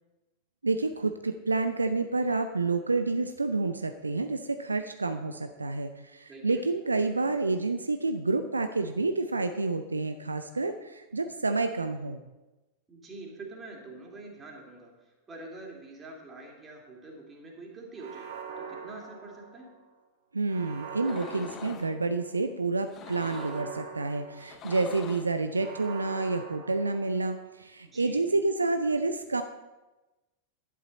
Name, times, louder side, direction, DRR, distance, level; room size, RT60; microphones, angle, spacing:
voice 1, 0.6-12.2 20.3-29.4, right 3 dB, 80° right, 8 dB, 0.5 m, -29 dB
voice 2, 6.3-6.7 12.9-19.8 27.9-28.3, right 2 dB, 20° right, -1 dB, 2.9 m, -45 dB
sound 1, 18.0-19.8 20.5-22.3 23.0-24.9 25.5-27.4, right 6 dB, 55° right, 1.6 m, -43 dB
sound 2, 21.0-21.9 22.8-23.7 24.4-25.4, left 8 dB, 30° left, 0.7 m, -45 dB
11.0 x 10.0 x 4.1 m, 1.1 s
figure-of-eight pair, 90°, 0 cm